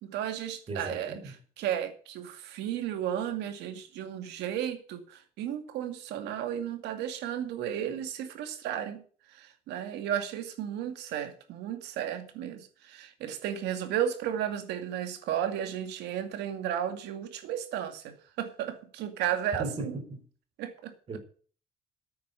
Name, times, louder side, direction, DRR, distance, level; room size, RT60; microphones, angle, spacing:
voice 1, 0.0-1.1 1.6-9.0 9.3-20.0 20.6-20.9, right 10 dB, 85° right, 7 dB, 2.3 m, -34 dB
voice 2, 0.7-1.3 19.5-20.2 21.1-21.2, right 2 dB, 35° right, 5 dB, 4.6 m, -37 dB
9.5 x 9.1 x 8.3 m, 0.43 s
cardioid pair, 110°, 17 cm